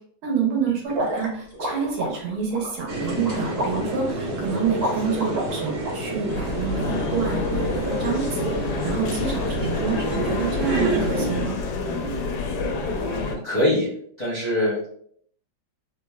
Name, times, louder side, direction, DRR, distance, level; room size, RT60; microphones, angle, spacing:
voice 1, 0.2-11.6, right 6 dB, 85° right, 0 dB, 1.7 m, -28 dB
sound 1, 0.9-5.9, right 1 dB, 45° right, 0.5 m, -30 dB
sound 2, 2.9-11.5, right 1 dB, 60° right, 1.2 m, -29 dB
sound 3, 6.3-13.4, left 3 dB, 80° left, 0.9 m, -28 dB
voice 2, 13.1-13.9 14.2-14.9, left 1 dB, 60° left, -8 dB, 0.4 m, -24 dB
3.8 x 2.0 x 2.2 m, 0.63 s
omnidirectional pair, 2.3 m